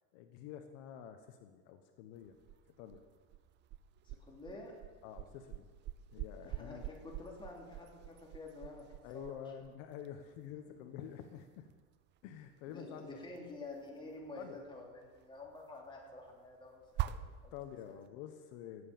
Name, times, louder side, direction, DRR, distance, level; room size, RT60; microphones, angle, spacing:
voice 1, 0.1-2.4 2.8-3.0 5.0-5.7 6.1-6.9 9.0-11.7 12.2-13.4 14.4-14.6 17.1-17.2 17.5-18.9, left 9 dB, 65° left, 7 dB, 1.2 m, -48 dB
sound 1, 2.1-18.1, right 12 dB, 25° right, 0.4 m, -46 dB
voice 2, 4.0-4.7 6.4-9.4 10.7-10.8 12.6-17.5, left 2 dB, 10° left, -2 dB, 3.3 m, -49 dB
18.0 x 8.0 x 7.1 m, 1.5 s
supercardioid pair, 140°, 42 cm